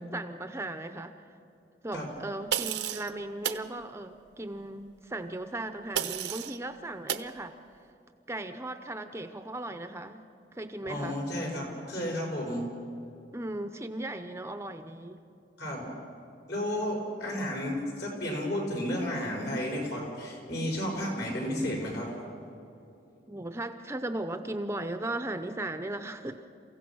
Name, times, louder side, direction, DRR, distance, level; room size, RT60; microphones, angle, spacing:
voice 1, 0.1-1.3 1.8-7.6 8.3-10.2 10.5-11.2 13.3-15.2 23.3-26.4, right 1 dB, 15° right, 9 dB, 0.7 m, -37 dB
sound 1, 2.5-3.1 3.4-3.7 6.0-6.6 7.1-7.3, right 9 dB, 75° right, 0.8 m, -31 dB
voice 2, 10.8-12.7 15.6-15.9 16.5-22.1, left 1 dB, 65° left, -1 dB, 6.3 m, -32 dB
29.0 x 16.0 x 6.2 m, 2.7 s
head